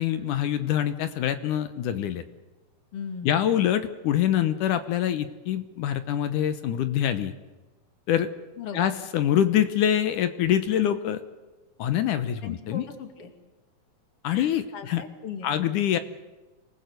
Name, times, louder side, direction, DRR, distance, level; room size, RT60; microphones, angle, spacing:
voice 1, 0.0-2.2 3.2-7.3 8.1-8.3 8.7-11.2 11.8-12.9 14.2-15.0 15.4-16.0, left 10 dB, 70° left, 11 dB, 2.3 m, -25 dB
voice 2, 2.9-3.4 8.6-8.9 12.4-13.3 14.3-15.5, left 6 dB, 40° left, 6 dB, 3.1 m, -38 dB
26.5 x 19.5 x 8.1 m, 1.2 s
omnidirectional pair, 4.1 m